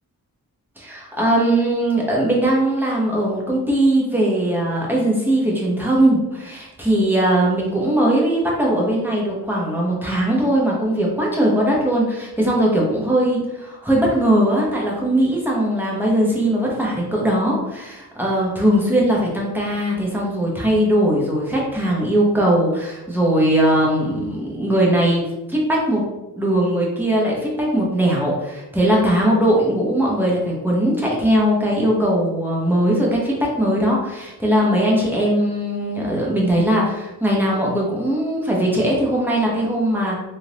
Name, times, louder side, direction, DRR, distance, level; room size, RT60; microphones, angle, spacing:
voice 1, 0.8-26.0 26.4-40.1, right 1 dB, 5° right, -4 dB, 0.9 m, -20 dB
3.5 x 2.6 x 2.9 m, 0.97 s
wide cardioid pair, 120°, 37 cm